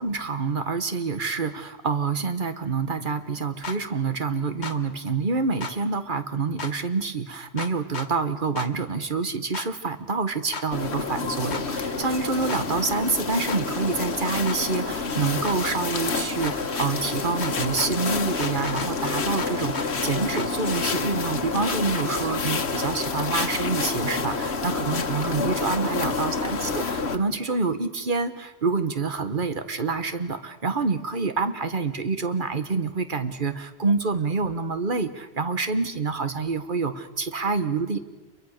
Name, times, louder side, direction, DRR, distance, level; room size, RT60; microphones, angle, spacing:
voice 1, 0.0-38.0, right 4 dB, 50° right, 9 dB, 1.6 m, -27 dB
sound 1, 3.6-3.8 4.6-4.8 5.6-5.7 6.6-6.7 7.6-8.1 8.6-8.7 9.5-9.7 10.5-10.7 11.5-11.6 12.5-12.6 13.5-13.6 14.5-14.6 15.4-15.6 16.4-16.6 17.4-17.9 18.4-18.9 19.4-19.9 20.4-20.5, left 4 dB, 90° left, 1.7 m, -33 dB
sound 2, 10.7-27.2, left 4 dB, 70° left, 1.6 m, -28 dB
27.5 x 23.0 x 6.6 m, 1.2 s
omnidirectional pair, 1.1 m